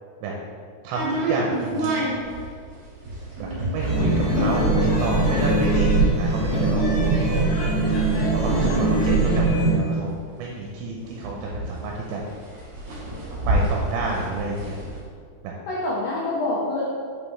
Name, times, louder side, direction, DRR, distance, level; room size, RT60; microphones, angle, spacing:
voice 1, 0.8-1.9 3.4-7.2 8.3-12.2 13.5-14.8 15.4-15.5, right 3 dB, 85° right, -2 dB, 2.9 m, -30 dB
sound 1, 0.9-10.4 10.8-10.9 11.0-15.0, right 1 dB, 65° right, 1.8 m, -29 dB
sound 2, 3.8-9.7, right 2 dB, 60° left, 2.8 m, -21 dB
voice 2, 4.4-5.6 8.6-9.1 15.7-16.9, left 2 dB, 90° left, -6 dB, 1.9 m, -28 dB
6.6 x 5.5 x 3.2 m, 2.1 s
omnidirectional pair, 5.2 m